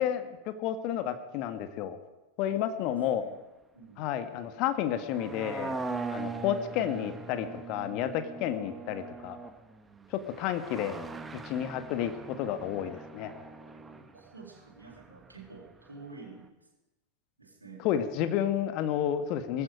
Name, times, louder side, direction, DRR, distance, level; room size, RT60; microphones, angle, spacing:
voice 1, 0.0-2.0 2.4-3.2 4.0-5.8 6.1-9.4 10.1-11.0 11.4-13.3 17.8-19.6, left 10 dB, 40° left, 9 dB, 1.4 m, -31 dB
voice 2, 2.5-3.3 3.7-4.1 6.2-7.2 13.7-16.5 17.4-17.9 18.3-18.4, right 4 dB, 80° right, 0 dB, 3.9 m, -50 dB
sound 1, 4.9-15.9 16.2-16.3, right 4 dB, 10° right, 1.2 m, -41 dB
18.5 x 14.5 x 5.1 m, 1.0 s
figure-of-eight pair, 90°, 0 cm